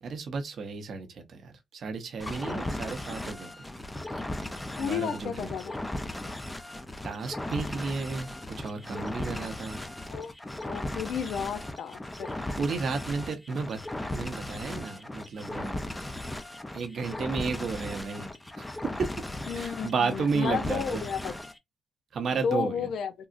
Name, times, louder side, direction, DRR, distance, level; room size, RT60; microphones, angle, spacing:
voice 1, 0.0-3.5 4.1-4.2 4.8-5.5 7.0-9.8 12.6-13.8 14.1-15.9 16.7-18.3 18.6-18.7 19.0-19.1 19.5-21.1 22.1-22.9, right 4 dB, 60° right, 0.7 m, -33 dB
sound 1, 2.2-21.6, left 1 dB, 10° left, 0.4 m, -37 dB
voice 2, 4.8-5.8 10.1-10.3 10.6-12.4 19.5-21.3 22.3-23.1, left 7 dB, 75° left, 0.5 m, -32 dB
3.6 x 2.0 x 2.5 m
cardioid pair, 105°, 0 cm